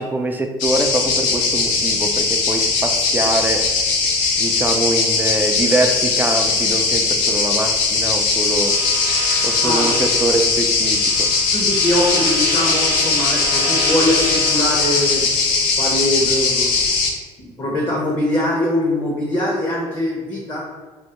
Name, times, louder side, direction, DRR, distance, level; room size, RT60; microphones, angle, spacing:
voice 1, 0.0-3.7 4.4-8.7 9.4-11.3, right 2 dB, 15° right, 4 dB, 0.3 m, -23 dB
sound 1, 0.6-17.1, left 4 dB, 85° left, 0.4 m, -19 dB
sound 2, 8.4-15.2, right 1 dB, 60° right, 0.7 m, -29 dB
voice 2, 9.6-10.0 11.5-15.3 15.8-16.8 17.4-20.7, left 1 dB, 30° left, -4 dB, 0.6 m, -22 dB
2.2 x 2.1 x 2.8 m, 1.3 s
supercardioid pair, 80°, 14 cm